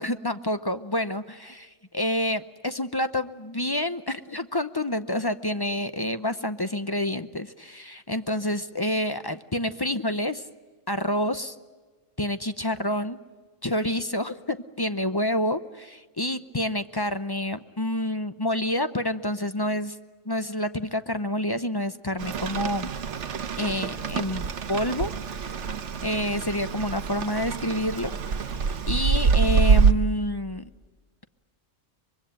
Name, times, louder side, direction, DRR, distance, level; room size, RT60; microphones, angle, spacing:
voice 1, 0.0-10.4 10.9-11.5 12.2-13.2 13.6-20.0 20.2-22.9 23.6-25.6 26.0-30.7, left 1 dB, 25° left, 11 dB, 0.7 m, -28 dB
Rain, 22.2-29.9, right 6 dB, 75° right, 1.3 m, -25 dB
24.5 x 22.5 x 8.9 m, 1.3 s
omnidirectional pair, 1.2 m